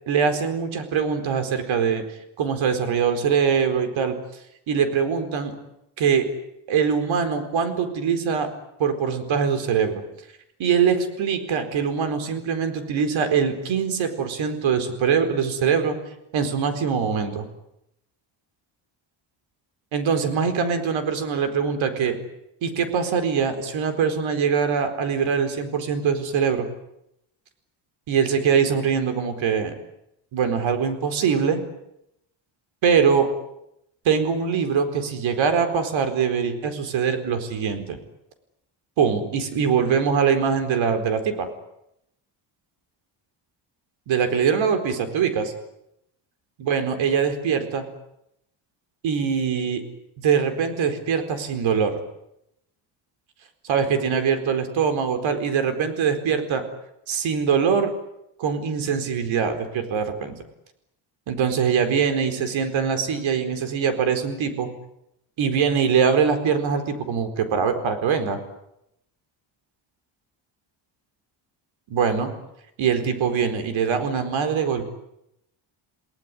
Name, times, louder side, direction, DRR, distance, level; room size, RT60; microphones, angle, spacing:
voice 1, 0.1-2.0 2.4-4.1 4.7-5.5 6.0-6.3 6.7-8.5 8.8-9.9 10.6-16.0 16.3-17.4 19.9-22.2 22.6-26.7 28.1-29.7 30.3-31.6 32.8-33.3 34.0-38.0 39.0-41.5 44.1-45.5 46.6-47.8 49.0-49.8 50.2-52.0 53.6-56.6 57.1-57.9 58.4-60.4 61.3-64.7 65.4-68.4 71.9-72.3 72.8-74.9, right 6 dB, 75° right, 9 dB, 4.5 m, -23 dB
29.0 x 19.0 x 9.9 m, 0.82 s
cardioid pair, 160°, 47 cm